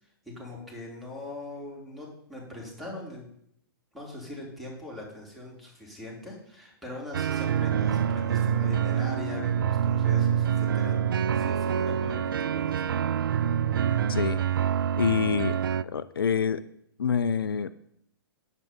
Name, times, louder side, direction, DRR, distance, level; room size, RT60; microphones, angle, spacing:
voice 1, 0.2-3.3 3.9-12.9, left 2 dB, ahead, -4 dB, 3.6 m, -41 dB
sound 1, 7.1-15.8, right 8 dB, 65° right, 0.4 m, -26 dB
voice 2, 14.1-14.4 15.0-15.6 15.8-16.6 17.0-17.7, left 7 dB, 70° left, 15 dB, 0.5 m, -26 dB
8.9 x 8.2 x 5.4 m, 0.70 s
figure-of-eight pair, 115°, 12 cm